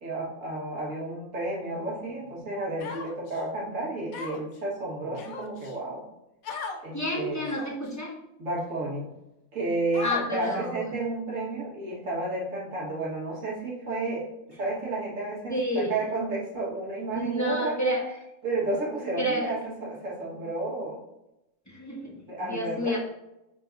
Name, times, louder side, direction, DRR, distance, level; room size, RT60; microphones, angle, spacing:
voice 1, 0.0-6.0 6.8-7.4 8.4-9.1 9.5-14.3 14.6-17.8 18.4-21.0 22.2-23.0, right 2 dB, 65° right, -4 dB, 2.1 m, -32 dB
Human voice, 2.8-3.4 4.1-4.6 5.1-5.7 6.4-6.8 7.4-7.9 8.6-8.7 9.9-10.5, left 4 dB, 85° left, 1.2 m, -37 dB
voice 2, 6.9-8.1 10.0-10.7 15.5-15.9 17.1-18.1 19.2-19.5 21.7-23.0, equal, 15° left, -2 dB, 1.1 m, -29 dB
9.2 x 4.1 x 2.7 m, 0.90 s
omnidirectional pair, 1.5 m